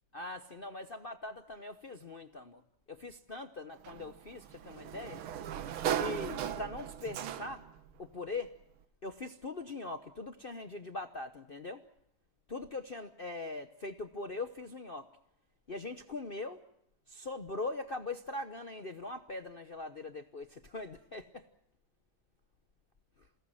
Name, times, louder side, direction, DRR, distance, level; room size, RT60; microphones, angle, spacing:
voice 1, 0.1-2.6 2.9-5.2 5.9-7.7 8.0-8.6 9.0-11.8 12.5-15.1 15.7-16.6 17.1-21.5, left 3 dB, 55° left, 7 dB, 0.6 m, -41 dB
Sliding door, 3.8-7.8, right 9 dB, 75° right, 1.9 m, -37 dB
28.5 x 18.0 x 7.7 m, 0.79 s
omnidirectional pair, 2.4 m